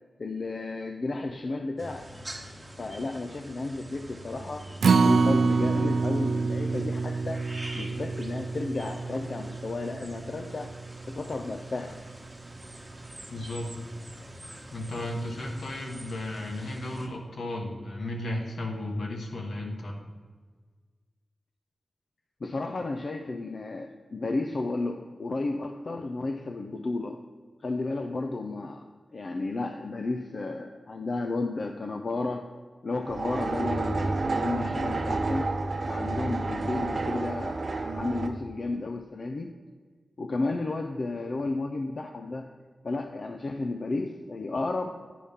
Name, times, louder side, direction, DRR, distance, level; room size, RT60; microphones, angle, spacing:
voice 1, 0.2-2.2 2.8-4.7 5.0-7.4 7.7-10.7 11.1-12.0 22.4-27.2 27.6-28.8 29.1-32.5 32.8-35.5 35.9-39.5 40.2-42.5 42.8-45.0, left 3 dB, 55° left, 5 dB, 0.4 m, -33 dB
sound 1, 1.8-17.1, right 1 dB, 20° right, 1.2 m, -44 dB
Acoustic guitar, 4.8-11.1 11.5-11.6 12.0-12.1, right 4 dB, 85° right, 0.3 m, -26 dB
voice 2, 13.3-13.8 14.7-20.0, left 1 dB, 80° left, 1 dB, 1.2 m, -34 dB
sound 2, 33.0-38.3, right 3 dB, 55° right, 0.8 m, -30 dB
10.0 x 3.6 x 5.5 m, 1.5 s
wide cardioid pair, 80°, 0 cm